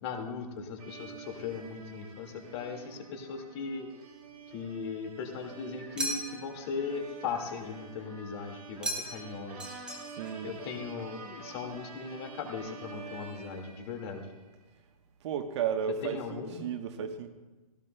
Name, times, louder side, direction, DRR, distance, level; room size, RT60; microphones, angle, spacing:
voice 1, 0.0-3.9 4.5-9.7 10.4-14.3 16.0-16.6, left 5 dB, 40° left, 4 dB, 1.9 m, -38 dB
sound 1, 0.8-14.5, right 5 dB, 75° right, 4.1 m, -48 dB
sound 2, 6.0-6.6 8.8-9.3 9.6-10.4, right 1 dB, 5° right, 1.3 m, -36 dB
voice 2, 10.2-10.5 15.2-17.3, right 8 dB, 45° right, 7 dB, 1.0 m, -33 dB
18.0 x 17.0 x 2.2 m, 1.2 s
hypercardioid pair, 150°, 20 cm